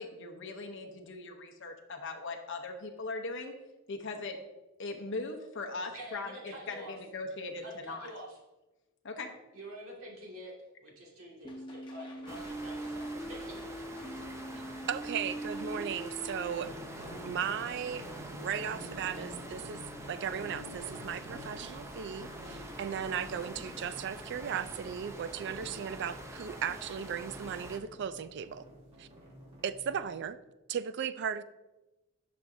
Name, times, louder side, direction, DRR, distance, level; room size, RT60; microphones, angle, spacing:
voice 1, 0.0-3.5 3.9-4.4 4.8-8.1 9.0-9.3, left 3 dB, 60° left, 3 dB, 0.8 m, -39 dB
voice 2, 5.9-6.9 7.6-8.4 9.5-10.5 10.8-13.6, equal, 75° right, -3 dB, 2.1 m, -47 dB
sound 1, 11.4-16.6, right 1 dB, 25° left, 1.1 m, -41 dB
sound 2, 12.3-27.8, right 1 dB, 15° right, 0.6 m, -46 dB
voice 3, 14.9-16.7 17.3-18.1 18.3-19.8 20.1-28.6 29.0-29.1 29.6-30.4 30.7-31.4, right 8 dB, 55° right, 14 dB, 0.4 m, -36 dB
sound 3, 16.6-30.1, equal, 30° right, 1.7 m, -49 dB
10.0 x 6.0 x 2.7 m, 1.1 s
head